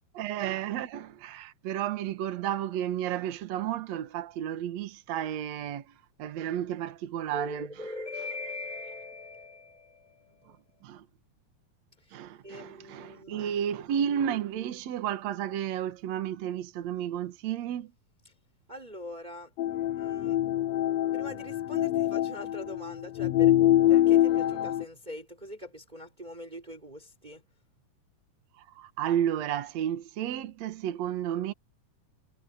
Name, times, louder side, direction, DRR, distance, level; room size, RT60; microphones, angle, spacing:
voice 1, 0.1-7.7 10.8-11.1 12.1-17.9 28.6-31.5, right 10 dB, 60° right, 2.4 m, -32 dB
voice 2, 7.3-10.8 12.0-12.1 12.4-13.5 18.7-19.5 20.0-20.4 21.1-23.5 23.9-27.4, left 1 dB, 15° right, 4.1 m, -42 dB
sound 1, 19.6-24.8, left 13 dB, 70° left, 1.8 m, -25 dB
omnidirectional pair, 3.7 m